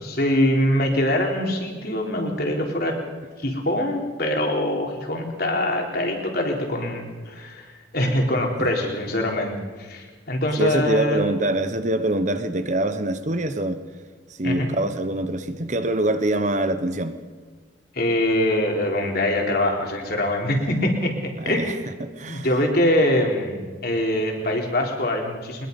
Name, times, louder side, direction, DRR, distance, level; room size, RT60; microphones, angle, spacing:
voice 1, 0.0-3.0 3.4-11.2 14.4-14.7 17.9-21.7 22.3-25.7, left 1 dB, 50° left, 3.9 m, -23 dB
voice 2, 10.6-13.8 14.4-17.2 21.4-21.7 22.0-22.5, right 1 dB, 40° right, 1.1 m, -24 dB
23.0 x 21.5 x 5.4 m
head